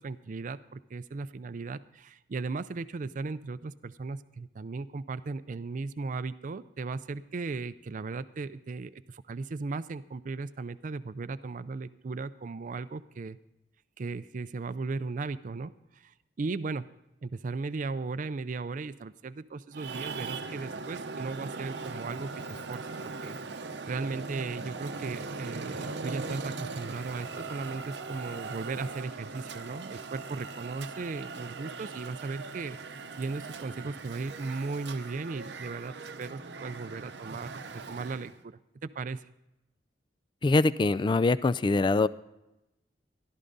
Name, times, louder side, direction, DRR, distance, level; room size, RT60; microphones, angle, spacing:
voice 1, 0.0-13.4 14.0-16.9 17.2-32.8 33.2-39.2, right 3 dB, 45° right, 14 dB, 0.4 m, -37 dB
Traffic noise roadway noise, 19.7-38.4, right 4 dB, 75° right, 0.8 m, -40 dB
voice 2, 40.4-42.1, left 3 dB, 25° left, 17 dB, 0.3 m, -23 dB
15.0 x 12.5 x 4.0 m, 0.92 s
head